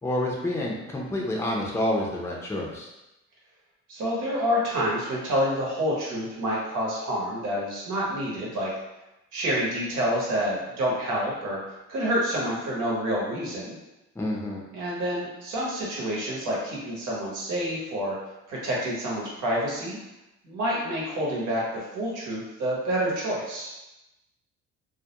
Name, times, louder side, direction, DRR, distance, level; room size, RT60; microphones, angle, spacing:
voice 1, 0.0-2.9 14.2-14.6, left 1 dB, 10° left, -2 dB, 0.5 m, -28 dB
voice 2, 3.9-8.7 9.3-11.6 11.9-13.8 14.7-18.2 18.5-20.0 20.4-23.7, equal, 85° right, -5 dB, 0.9 m, -28 dB
2.3 x 2.1 x 2.8 m, 0.95 s
cardioid pair, 90°, 30 cm